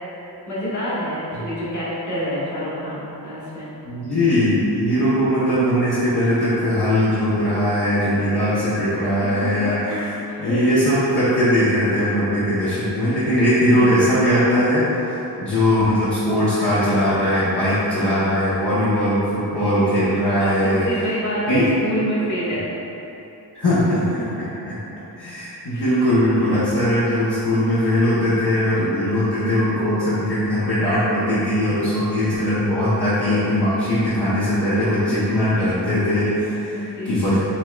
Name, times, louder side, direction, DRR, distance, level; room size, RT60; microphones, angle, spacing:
voice 1, 0.5-3.7 9.2-10.6 13.7-14.0 17.7-18.2 20.4-22.7 24.1-24.2 25.7-25.8 36.7-37.4, equal, 45° left, -9 dB, 1.5 m, -27 dB
voice 2, 3.8-9.9 10.4-20.9 21.5-21.7 23.5-24.8 25.2-37.4, equal, 65° left, -12 dB, 1.0 m, -20 dB
5.5 x 3.2 x 2.3 m, 3.0 s
cardioid pair, 65°, 42 cm